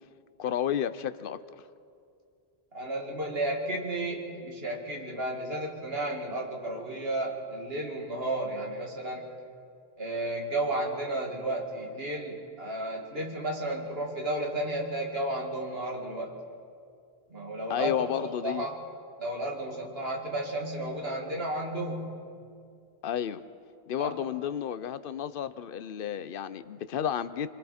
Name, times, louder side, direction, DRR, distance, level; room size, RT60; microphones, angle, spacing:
voice 1, 0.4-1.4 17.7-18.6 23.0-23.4 23.9-27.5, left 9 dB, 60° left, 14 dB, 0.8 m, -31 dB
voice 2, 2.7-9.3 10.0-16.3 17.3-18.8 19.2-22.2 24.0-24.1, right 1 dB, 70° right, 0 dB, 2.6 m, -33 dB
27.0 x 22.0 x 4.3 m, 2.3 s
omnidirectional pair, 1.0 m